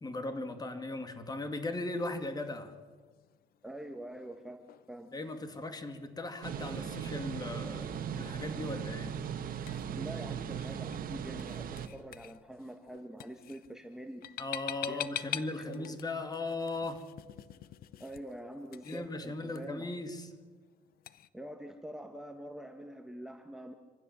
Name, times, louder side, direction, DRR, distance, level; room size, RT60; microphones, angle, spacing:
voice 1, 0.0-2.8 5.1-9.2 14.4-17.1 18.8-20.3, left 2 dB, 25° left, 2.3 m, -38 dB
sound 1, 1.8-21.3, left 12 dB, 60° left, 0.8 m, -48 dB
voice 2, 3.6-5.1 9.9-14.3 14.9-15.1 15.5-16.0 18.0-19.9 21.3-23.7, right 1 dB, 5° right, 1.4 m, -45 dB
sound 2, 6.4-11.9, right 8 dB, 55° right, 1.6 m, -38 dB
26.0 x 15.5 x 7.4 m
cardioid pair, 110°, 17 cm